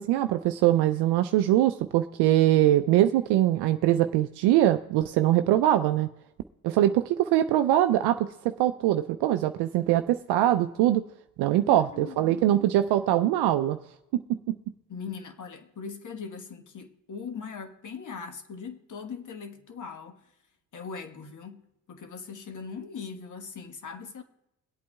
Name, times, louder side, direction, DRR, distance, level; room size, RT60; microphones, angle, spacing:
voice 1, 0.0-6.1 6.6-11.1 11.4-13.8 14.1-14.6, right 13 dB, 65° right, 0.5 m, -23 dB
voice 2, 11.5-12.6 14.9-20.2 20.7-24.2, left 5 dB, 45° left, 1.4 m, -40 dB
23.0 x 8.4 x 2.3 m
hypercardioid pair, 60°, 43 cm